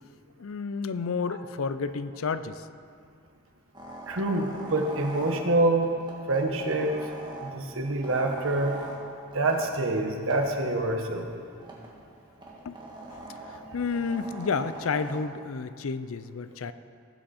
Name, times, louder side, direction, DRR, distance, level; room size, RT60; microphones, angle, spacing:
voice 1, 0.4-2.7 12.6-12.8 13.5-16.7, left 5 dB, 70° left, 12 dB, 0.5 m, -31 dB
sound 1, 3.7-15.2, right 2 dB, 20° right, 1.7 m, -43 dB
voice 2, 4.1-5.9 6.3-6.9 7.4-8.8 9.3-11.3, right 2 dB, 65° right, 3 dB, 1.3 m, -26 dB
18.0 x 7.9 x 4.3 m, 2.3 s
head